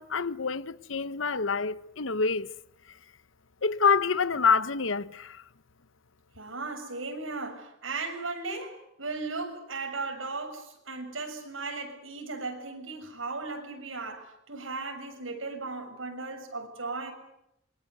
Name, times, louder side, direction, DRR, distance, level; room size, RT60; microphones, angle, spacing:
voice 1, 0.0-2.5 3.6-5.4, left 5 dB, 70° left, 1.0 m, -27 dB
voice 2, 6.4-17.1, right 3 dB, 75° right, 7.1 m, -36 dB
27.5 x 24.5 x 8.3 m
head